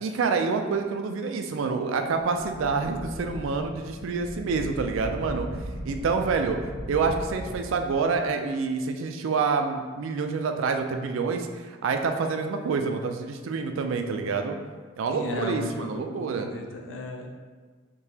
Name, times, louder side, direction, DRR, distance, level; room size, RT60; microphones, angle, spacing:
voice 1, 0.0-5.5 5.8-6.6 6.9-14.6 15.0-16.5, right 4 dB, 70° right, 5 dB, 0.3 m, -27 dB
sound 1, 2.1-8.3, equal, 10° left, 0.8 m, -38 dB
voice 2, 15.1-17.3, left 1 dB, 65° left, 2 dB, 0.5 m, -35 dB
3.8 x 2.8 x 2.7 m, 1.4 s
head